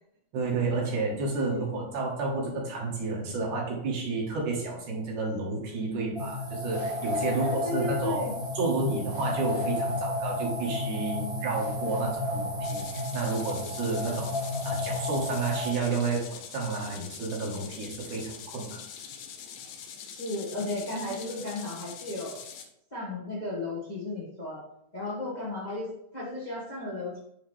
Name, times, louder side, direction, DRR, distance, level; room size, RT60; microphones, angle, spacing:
voice 1, 0.3-8.3 8.5-14.3 14.6-18.8, right 3 dB, 70° right, -2 dB, 2.9 m, -31 dB
voice 2, 1.4-1.8 7.3-8.3 20.1-22.4 22.9-24.6 24.9-27.2, left 2 dB, 35° left, -6 dB, 0.6 m, -35 dB
sound 1, 6.1-15.7, left 1 dB, 45° right, 0.8 m, -32 dB
sound 2, 12.6-22.6, left 7 dB, 75° left, 1.9 m, -44 dB
9.7 x 3.6 x 3.3 m, 0.79 s
omnidirectional pair, 3.7 m